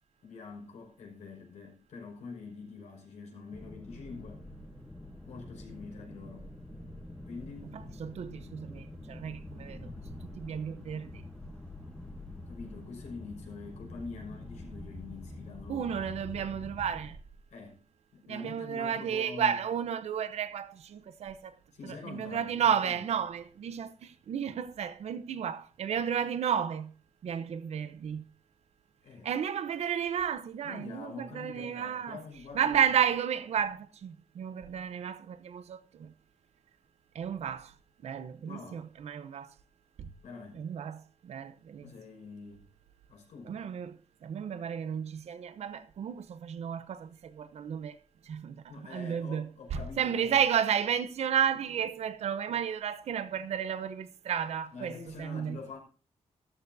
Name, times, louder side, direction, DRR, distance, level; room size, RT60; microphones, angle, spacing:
voice 1, 0.2-4.4 5.3-6.5 7.2-7.8 12.5-15.9 17.5-17.8 18.1-19.6 21.7-23.1 29.0-29.3 30.6-32.9 38.5-38.8 40.2-40.6 41.8-42.6 43.1-43.6 48.7-50.4 54.7-55.8, left 4 dB, 85° left, 5.6 m, -45 dB
sound 1, 3.5-17.1, left 2 dB, 10° left, 1.1 m, -46 dB
voice 2, 8.0-11.1 15.7-17.2 18.3-21.6 22.1-26.9 27.2-28.2 29.2-32.2 32.5-36.1 37.1-37.7 38.0-39.5 40.0-40.1 40.6-41.8 43.5-48.0 48.3-48.6 48.9-55.6, right 8 dB, 65° right, 0.9 m, -32 dB
14.0 x 13.5 x 2.7 m
wide cardioid pair, 180°, 12 cm